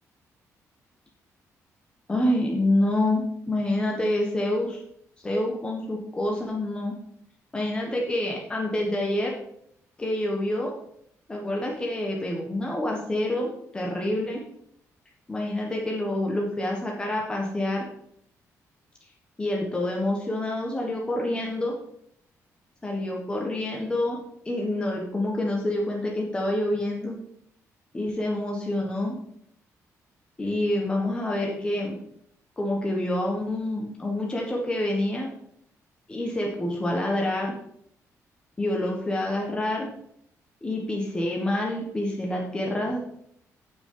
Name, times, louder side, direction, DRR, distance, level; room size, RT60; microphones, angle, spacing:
voice 1, 2.1-4.8 5.2-6.9 7.5-9.4 10.0-10.7 11.3-14.4 15.3-17.9 19.4-21.8 22.8-24.2 24.4-27.2 27.9-29.2 30.4-32.0 32.6-35.3 36.1-37.5 38.6-39.9 40.6-43.0, left 1 dB, 15° left, -1 dB, 1.4 m, -27 dB
14.5 x 6.0 x 3.9 m, 0.71 s
cardioid pair, 160°, 6 cm